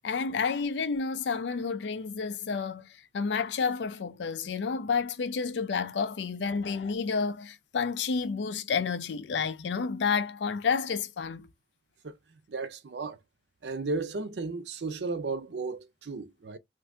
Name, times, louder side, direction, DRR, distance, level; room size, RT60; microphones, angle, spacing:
voice 1, 0.0-2.9 3.1-11.5, left 5 dB, 85° left, 0.4 m, -30 dB
voice 2, 12.5-13.2 13.6-16.6, right 3 dB, 75° right, 0.5 m, -34 dB
2.7 x 2.5 x 3.3 m
head